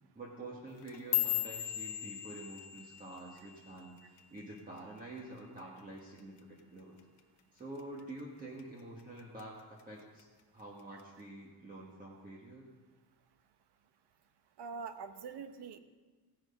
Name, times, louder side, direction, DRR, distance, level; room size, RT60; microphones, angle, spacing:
voice 1, 0.1-6.9 7.5-10.3 10.5-12.7, right 2 dB, 20° right, -4 dB, 1.4 m, -48 dB
sound 1, 0.7-5.1 5.4-5.8 6.2-6.6 7.0-7.2 7.8-8.2 8.6-9.4 9.8-10.2 11.0-11.1, left 15 dB, 80° left, 0.9 m, -38 dB
voice 2, 14.6-15.8, right 5 dB, 75° right, 9 dB, 0.9 m, -44 dB
16.0 x 6.3 x 5.3 m, 1.3 s
cardioid pair, 165°, 41 cm